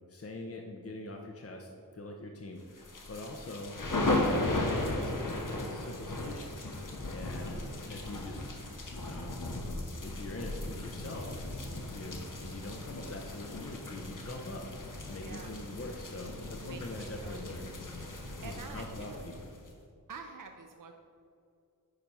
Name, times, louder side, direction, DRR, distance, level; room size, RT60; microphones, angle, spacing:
voice 1, 0.1-3.7 4.2-6.5 7.1-8.5 9.0-9.4 10.0-11.4 11.9-14.7 15.1-17.7 18.4-19.5, left 2 dB, 40° left, 2 dB, 0.8 m, -43 dB
sound 1, 2.8-19.7, left 2 dB, 60° left, 1.2 m, -36 dB
voice 2, 7.3-8.0 15.1-15.6 16.6-17.4 18.1-19.3 20.1-20.9, right 5 dB, 65° right, 4 dB, 0.6 m, -48 dB
10.0 x 4.6 x 5.4 m, 2.5 s
wide cardioid pair, 65°, 35 cm